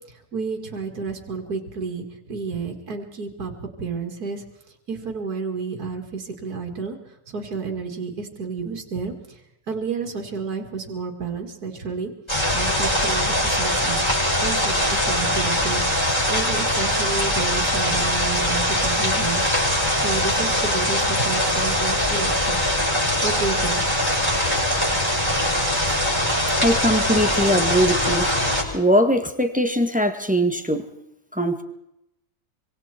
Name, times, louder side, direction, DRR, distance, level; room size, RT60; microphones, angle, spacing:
voice 1, 0.1-3.5 3.8-4.4 4.9-12.1 12.5-14.0 14.4-19.5 19.9-22.7 23.2-23.8, right 5 dB, 80° right, 4 dB, 2.9 m, -31 dB
sound 1, 12.3-28.6, left 1 dB, 15° left, 7.5 m, -22 dB
voice 2, 26.6-28.3 28.7-30.8 31.3-31.6, equal, 5° right, 6 dB, 1.7 m, -21 dB
25.5 x 25.5 x 4.5 m, 0.81 s
omnidirectional pair, 1.6 m